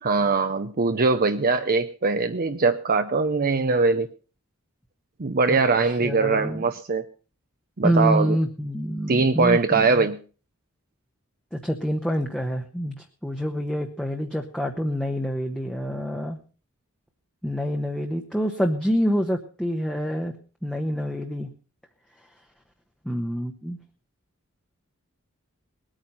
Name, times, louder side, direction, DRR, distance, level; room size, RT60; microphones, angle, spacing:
voice 1, 0.0-4.1 5.2-7.0 7.8-8.4 9.1-10.2, right 4 dB, 45° right, 8 dB, 0.7 m, -22 dB
voice 2, 5.5-6.6 7.8-10.1 11.5-16.4 17.4-20.3 20.6-21.5 23.0-23.8, equal, 5° left, 2 dB, 1.1 m, -27 dB
20.0 x 9.0 x 5.6 m, 0.38 s
head